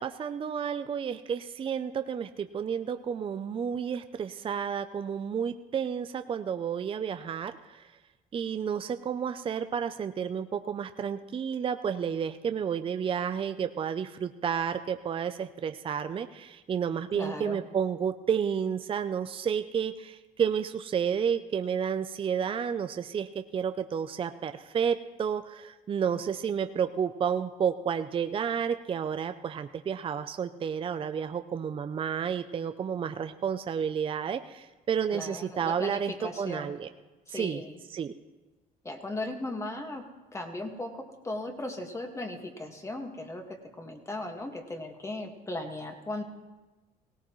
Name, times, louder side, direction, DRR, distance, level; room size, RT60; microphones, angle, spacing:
voice 1, 0.0-7.8 8.3-36.9 37.3-37.6 37.9-38.1, right 7 dB, 30° right, 9 dB, 0.5 m, -31 dB
voice 2, 17.1-17.6 35.1-36.7 37.3-37.8 38.8-40.0 40.3-46.2, left 1 dB, 15° left, 4 dB, 1.7 m, -37 dB
18.0 x 17.0 x 3.1 m, 1.2 s
cardioid pair, 110°, 17 cm